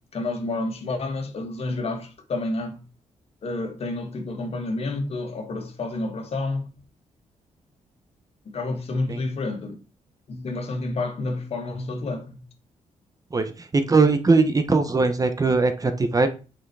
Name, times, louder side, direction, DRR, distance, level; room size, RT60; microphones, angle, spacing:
voice 1, 0.1-2.8 3.4-6.7 8.5-9.8 10.3-12.4, left 2 dB, 50° left, 2.4 m, -29 dB
voice 2, 13.3-16.3, right 3 dB, 30° right, 1.2 m, -20 dB
8.8 x 6.3 x 4.8 m
cardioid pair, 120°, 13 cm